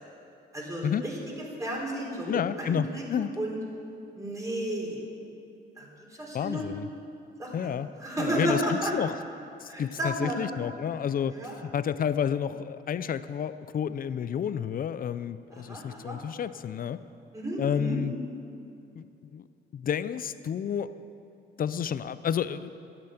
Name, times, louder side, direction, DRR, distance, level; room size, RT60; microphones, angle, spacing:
voice 1, 0.5-1.1 1.6-3.6 4.2-5.0 5.8-5.9 6.2-6.7 7.4-7.7 8.0-8.9 9.7-10.4 11.3-11.6 15.5-16.2 17.3-18.0, right 1 dB, 15° right, -3 dB, 4.1 m, -32 dB
voice 2, 2.3-3.3 6.3-6.9 7.5-7.9 8.2-9.2 9.6-17.0 17.6-18.1 19.0-19.4 19.7-20.9 21.6-22.7, left 8 dB, 45° left, 13 dB, 0.6 m, -30 dB
12.5 x 8.9 x 7.8 m, 2.6 s
cardioid pair, 90°, 20 cm